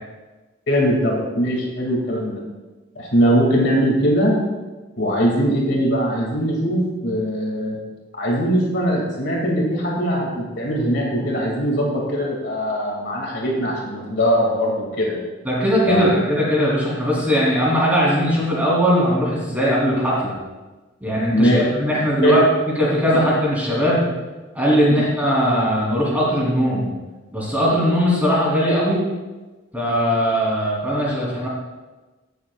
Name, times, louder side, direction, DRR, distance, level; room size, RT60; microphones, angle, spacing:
voice 1, 0.7-2.4 3.0-4.4 5.0-7.7 8.1-15.2 15.9-16.0 21.3-21.6 22.2-22.4, equal, 60° left, -2 dB, 2.4 m, -20 dB
voice 2, 15.4-20.3 21.0-22.4 22.7-24.1 24.5-26.9 27.3-29.0 29.7-31.5, equal, 10° right, -6 dB, 3.2 m, -19 dB
17.5 x 7.3 x 2.4 m, 1.2 s
head